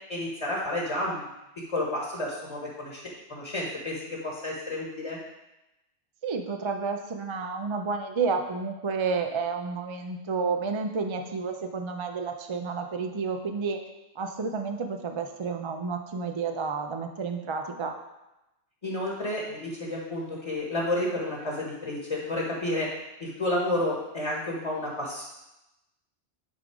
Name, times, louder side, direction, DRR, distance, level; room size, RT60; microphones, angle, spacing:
voice 1, 0.1-1.3 1.7-3.0 3.3-5.2 18.8-22.9 23.2-25.3, left 1 dB, 30° left, -3 dB, 1.4 m, -31 dB
voice 2, 6.2-13.8 14.2-17.9, right 4 dB, 45° right, 5 dB, 0.3 m, -30 dB
10.5 x 3.8 x 4.8 m, 0.94 s
omnidirectional pair, 1.2 m